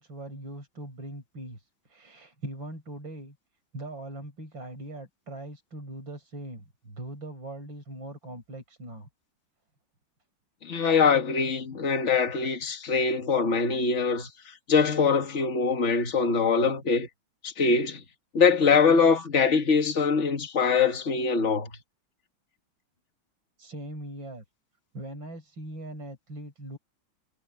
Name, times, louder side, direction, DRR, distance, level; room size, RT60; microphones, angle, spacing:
voice 1, 0.0-3.4 3.7-9.1 23.6-24.4 24.9-26.8, right 1 dB, 65° right, 7.4 m, -41 dB
voice 2, 10.6-14.3 14.7-17.1 17.4-18.0 18.3-21.7, left 5 dB, 35° left, 1.9 m, -23 dB
omnidirectional pair, 2.2 m